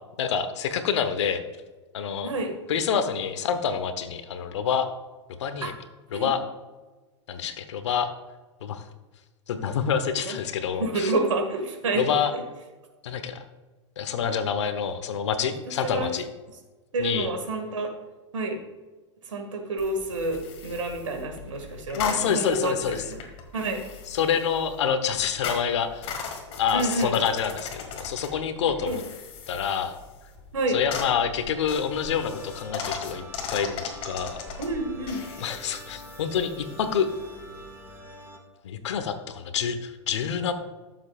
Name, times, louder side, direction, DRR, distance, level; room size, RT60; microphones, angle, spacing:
voice 1, 0.2-1.4 1.9-2.3 2.7-4.9 5.4-5.7 6.1-6.4 7.3-8.1 8.6-8.8 9.5-11.1 11.9-12.3 13.0-13.4 14.0-16.3 17.0-17.3 21.9-23.0 24.1-26.1 26.6-29.0 29.5-30.0 30.7-33.2 33.5-34.4 35.4-37.1 38.6-40.5, left 7 dB, 70° left, 9 dB, 1.0 m, -27 dB
voice 2, 2.2-2.5 5.6-5.7 6.1-6.3 10.3-10.4 10.8-12.0 12.3-12.4 15.7-16.1 16.9-17.9 18.3-18.6 19.3-22.8 23.0-23.2 23.5-23.8 26.7-27.1 28.8-29.0 30.5-30.8 34.6-35.3, right 2 dB, 85° right, 5 dB, 1.9 m, -29 dB
sound 1, 19.8-38.0, left 5 dB, 40° left, 1.9 m, -39 dB
sound 2, 31.9-38.4, equal, 15° right, 1.8 m, -45 dB
13.0 x 7.3 x 2.4 m, 1.2 s
hypercardioid pair, 110°, 15 cm